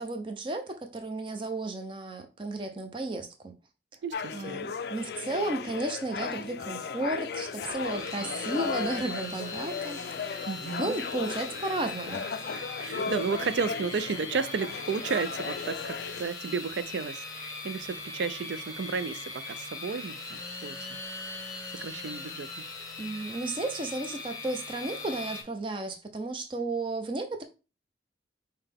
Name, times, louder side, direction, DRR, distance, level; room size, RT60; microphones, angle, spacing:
voice 1, 0.0-3.5 4.3-10.5 10.8-12.3 23.0-27.4, right 2 dB, 25° right, 0.6 m, -33 dB
voice 2, 4.0-4.6 10.5-11.0 12.5-21.0 21.8-22.6, right 5 dB, 75° right, 0.4 m, -33 dB
sound 1, 4.1-16.3, left 5 dB, 60° left, 0.3 m, -36 dB
sound 2, 7.6-25.4, left 3 dB, 20° left, 0.8 m, -40 dB
5.6 x 2.2 x 3.4 m
head